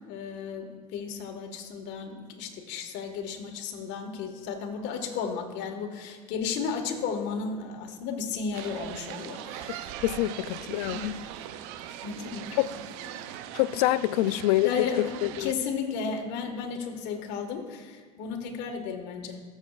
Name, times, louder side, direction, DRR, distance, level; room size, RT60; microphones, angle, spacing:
voice 1, 0.1-9.9 10.8-11.2 12.0-12.8 13.1-13.2 14.2-14.3 14.6-15.1 15.4-19.4, left 6 dB, 65° left, 4 dB, 1.6 m, -34 dB
sound 1, 8.5-15.5, right 11 dB, 70° right, 0.6 m, -40 dB
voice 2, 10.0-11.2 12.6-12.7 13.5-14.7 15.2-15.5, left 16 dB, 80° left, 16 dB, 0.4 m, -26 dB
21.5 x 7.3 x 2.4 m, 1.5 s
supercardioid pair, 95°, 20 cm